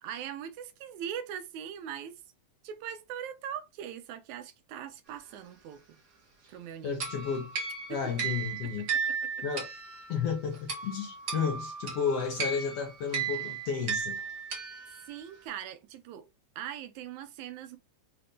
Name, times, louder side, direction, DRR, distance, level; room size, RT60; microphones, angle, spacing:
voice 1, 0.0-2.2 2.6-6.0 6.5-7.0 7.9-8.0 9.2-9.4 15.1-16.3 16.6-17.8, right 9 dB, 80° right, 1.9 m, -41 dB
voice 2, 6.8-7.5 7.9-8.9 9.4-9.7 10.1-14.2, left 6 dB, 70° left, 1.6 m, -32 dB
sound 1, 7.0-15.3, right 6 dB, 65° right, 0.8 m, -35 dB
5.8 x 2.6 x 3.4 m
omnidirectional pair, 3.5 m